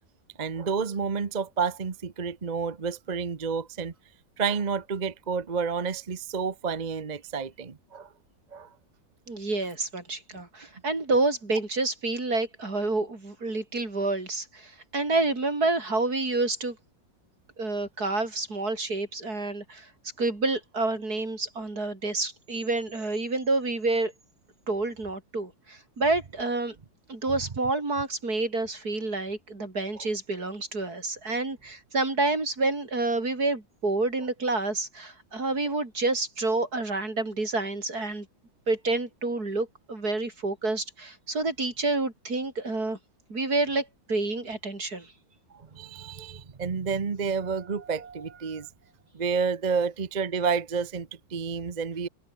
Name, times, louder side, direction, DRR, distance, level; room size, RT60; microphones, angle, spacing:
voice 1, 0.4-3.9 4.4-8.1 8.5-8.7 10.3-10.4 30.0-30.1 45.5-48.7 49.1-52.1, right 5 dB, 35° right, 0.7 m, -30 dB
voice 2, 9.3-16.8 17.6-19.9 20.2-24.1 24.7-26.8 27.1-38.3 38.7-43.0 43.3-45.1, right 2 dB, 50° right, 5.6 m, -28 dB
omnidirectional pair, 2.1 m